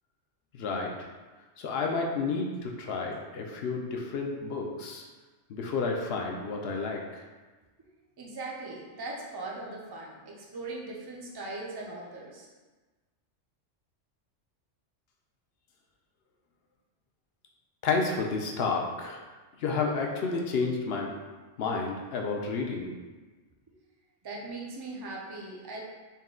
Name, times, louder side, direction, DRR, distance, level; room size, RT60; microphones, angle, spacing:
voice 1, 0.5-0.9 1.6-5.0 5.5-7.2 17.8-19.2 19.6-21.1 21.6-22.9, left 4 dB, 65° left, 1 dB, 0.7 m, -31 dB
voice 2, 8.2-12.5 23.7-23.8 24.2-25.8, right 2 dB, 35° right, -3 dB, 0.4 m, -39 dB
4.2 x 2.3 x 3.6 m, 1.3 s
omnidirectional pair, 1.3 m